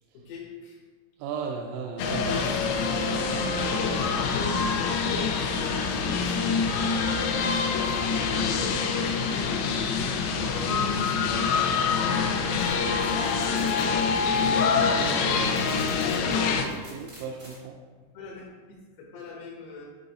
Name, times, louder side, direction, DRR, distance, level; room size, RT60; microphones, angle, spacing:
voice 1, 0.1-0.8 2.1-2.4 3.5-5.6 6.0-6.6 7.0-9.6 10.5-12.7 13.3-13.6 18.1-19.8, left 4 dB, 70° left, -3 dB, 2.6 m, -39 dB
voice 2, 1.2-3.0 15.0-17.7, right 6 dB, 90° right, 0 dB, 3.2 m, -36 dB
sound 1, 2.0-16.6, left 5 dB, 90° left, 3.4 m, -25 dB
sound 2, 12.5-17.6, right 1 dB, 60° right, 1.1 m, -50 dB
9.9 x 4.0 x 3.9 m, 1.4 s
omnidirectional pair, 5.7 m